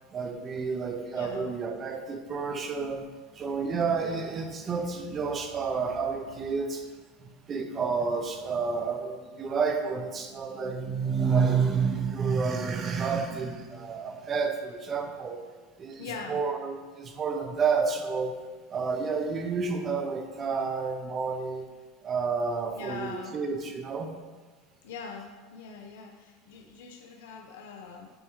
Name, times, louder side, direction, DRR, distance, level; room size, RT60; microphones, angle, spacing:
voice 1, 0.1-3.1 3.3-6.9 7.2-15.4 15.8-18.4 18.7-21.7 22.0-24.1, right 5 dB, 20° right, 5 dB, 0.5 m, -30 dB
voice 2, 1.1-1.6 4.0-4.2 16.0-16.4 22.7-23.4 24.8-28.1, left 5 dB, 85° left, 2 dB, 0.6 m, -42 dB
8.9 x 3.5 x 3.0 m, 1.4 s
supercardioid pair, 160°, 0 cm